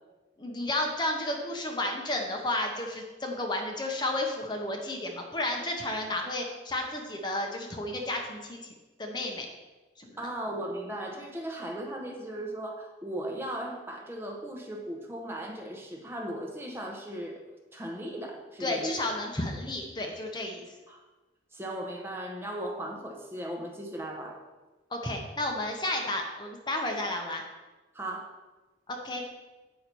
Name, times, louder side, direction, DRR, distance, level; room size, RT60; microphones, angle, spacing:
voice 1, 0.4-8.7 9.0-9.5 10.0-10.2 18.6-20.6 24.9-27.4 28.9-29.3, left 1 dB, 25° left, 2 dB, 0.8 m, -32 dB
voice 2, 10.2-17.4 17.7-19.2 20.9-21.0 21.5-24.4 27.9-28.3, right 1 dB, 15° right, 1 dB, 0.9 m, -37 dB
8.4 x 5.6 x 4.5 m, 1.2 s
head